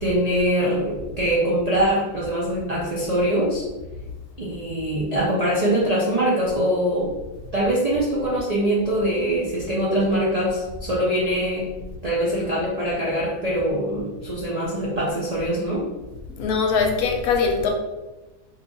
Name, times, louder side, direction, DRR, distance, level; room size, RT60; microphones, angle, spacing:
voice 1, 0.0-3.6 4.4-7.1 7.5-11.6 12.0-15.8, right 1 dB, 80° right, -6 dB, 0.3 m, -23 dB
voice 2, 16.4-17.7, left 5 dB, 75° left, 2 dB, 1.0 m, -21 dB
2.9 x 2.3 x 3.7 m, 1.1 s
omnidirectional pair, 1.7 m